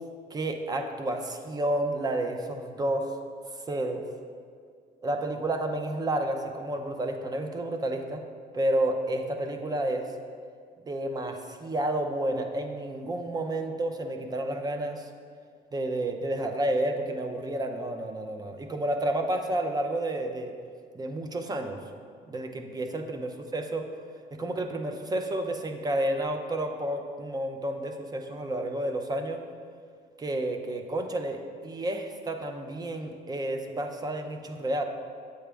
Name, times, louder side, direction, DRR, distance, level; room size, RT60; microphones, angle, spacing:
voice 1, 0.3-3.1 3.7-4.0 5.0-8.2 8.5-10.1 10.8-15.1 15.7-20.5 20.9-21.8 22.3-23.8 24.4-29.4 30.2-34.8, right 1 dB, 25° right, 5 dB, 0.6 m, -30 dB
7.8 x 4.9 x 3.4 m, 2.1 s
cardioid pair, 110°, 17 cm